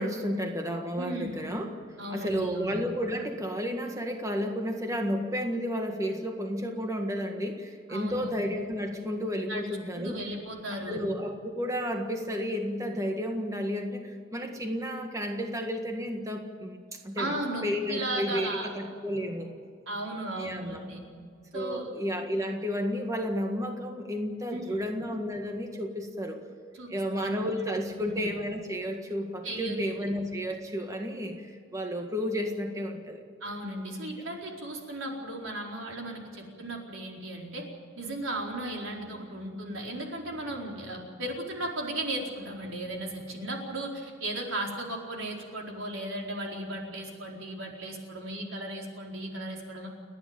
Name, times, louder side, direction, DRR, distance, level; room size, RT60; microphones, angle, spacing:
voice 1, 0.0-1.7 2.1-10.2 10.9-16.8 17.0-17.3 17.6-19.5 20.3-20.8 21.5-26.4 26.9-33.2, equal, 15° right, 3 dB, 1.7 m, -32 dB
voice 2, 1.0-1.4 2.0-2.7 7.9-8.3 9.5-9.6 9.9-11.0 17.2-18.7 19.9-21.0 21.5-21.9 24.5-24.9 26.7-27.3 27.8-28.1 29.4-30.1 33.4-37.6 38.0-49.9, right 1 dB, 75° right, 0 dB, 4.6 m, -36 dB
30.0 x 10.5 x 9.0 m, 2.1 s
head